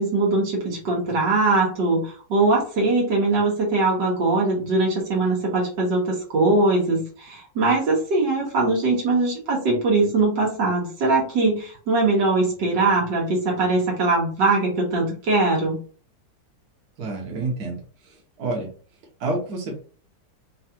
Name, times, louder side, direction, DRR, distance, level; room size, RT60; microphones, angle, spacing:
voice 1, 0.0-15.8, right 3 dB, 80° right, -1 dB, 1.9 m, -21 dB
voice 2, 17.0-17.8 18.4-18.7 19.2-19.8, right 2 dB, 65° right, -1 dB, 1.7 m, -28 dB
4.6 x 2.4 x 2.9 m, 0.40 s
omnidirectional pair, 1.9 m